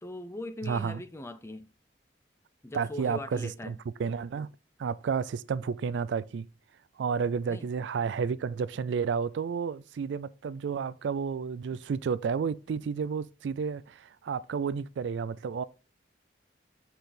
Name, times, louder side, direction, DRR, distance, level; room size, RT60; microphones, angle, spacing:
voice 1, 0.0-1.7 2.6-3.8 7.5-7.7, left 1 dB, 15° left, 0.5 m, -40 dB
voice 2, 0.6-1.0 2.7-4.5 4.8-6.5 7.0-15.6, right 6 dB, 85° right, 0.3 m, -31 dB
6.1 x 4.2 x 5.0 m
head